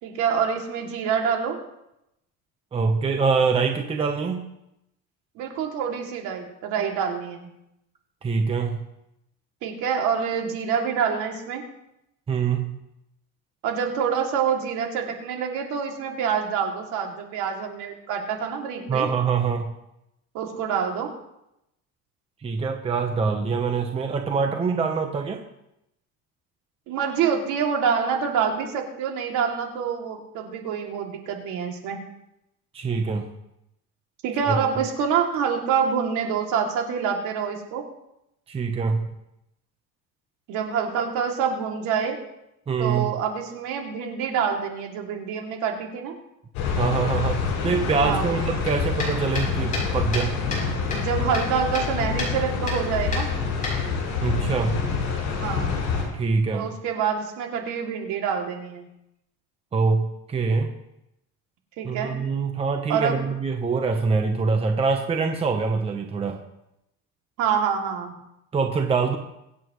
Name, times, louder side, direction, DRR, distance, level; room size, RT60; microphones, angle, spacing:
voice 1, 0.0-1.6 5.4-7.5 9.6-11.6 13.6-19.1 20.3-21.1 24.4-24.5 26.9-32.0 34.2-37.8 40.5-42.2 42.8-46.1 48.0-48.4 50.5-50.6 50.9-53.3 55.4-55.7 56.5-58.9 61.8-62.1 62.9-63.2 67.4-68.1, right 7 dB, 65° right, 1 dB, 2.6 m, -26 dB
voice 2, 2.7-4.4 8.2-8.8 12.3-12.8 18.9-19.7 22.4-25.4 32.7-33.3 34.5-34.6 38.5-39.1 42.7-43.1 46.8-50.4 54.2-54.8 56.1-56.7 59.7-60.7 61.8-66.4 68.5-69.2, right 5 dB, 15° right, 4 dB, 0.9 m, -24 dB
sound 1, 46.5-56.0, left 5 dB, 60° left, 5.7 m, -27 dB
sound 2, 48.6-50.7 50.9-51.9 52.2-52.3 52.7-52.8 53.1-54.2, left 2 dB, 25° left, 5.8 m, -31 dB
23.5 x 8.7 x 3.1 m, 0.84 s
cardioid pair, 160°, 33 cm